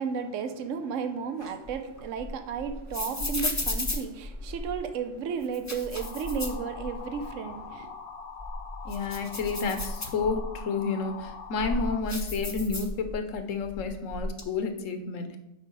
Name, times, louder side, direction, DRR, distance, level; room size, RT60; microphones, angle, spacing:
voice 1, 0.0-7.9, right 6 dB, 80° right, 1.0 m, -33 dB
sound 1, 1.4-4.8 5.4-7.2 7.6-7.7 8.2-10.6 11.2-13.3 13.6-14.4, left 2 dB, 20° left, 0.5 m, -34 dB
sound 2, 5.9-12.0, left 5 dB, 55° left, 0.8 m, -43 dB
voice 2, 8.8-15.4, left 4 dB, 80° left, 1.2 m, -30 dB
7.6 x 5.0 x 4.7 m
omnidirectional pair, 1.3 m